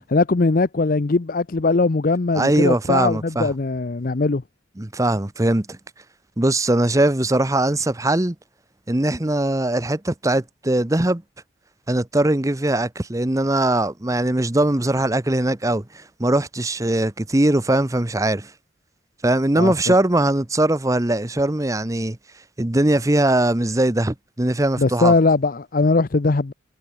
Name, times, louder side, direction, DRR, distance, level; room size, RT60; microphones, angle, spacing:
voice 1, 0.1-4.4 19.6-19.7 24.8-26.5, left 3 dB, 50° left, 0.6 m, -20 dB
voice 2, 2.3-3.5 4.8-5.8 6.4-8.3 8.9-11.2 11.9-18.5 19.2-22.2 22.6-25.1, right 1 dB, 15° right, 0.8 m, -20 dB
head